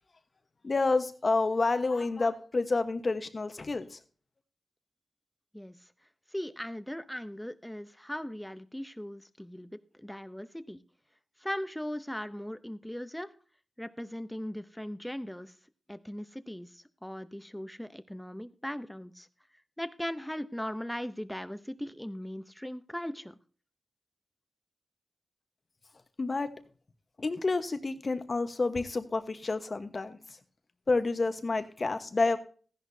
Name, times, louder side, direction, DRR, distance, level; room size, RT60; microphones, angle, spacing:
voice 1, 0.6-4.0 26.2-26.5 27.2-30.2 30.9-32.4, left 3 dB, 45° left, 1.2 m, -29 dB
voice 2, 6.3-10.8 11.4-13.3 13.8-15.5 15.9-19.3 19.8-23.4, equal, 5° left, 0.8 m, -39 dB
14.5 x 11.0 x 2.7 m
cardioid pair, 70°, 0 cm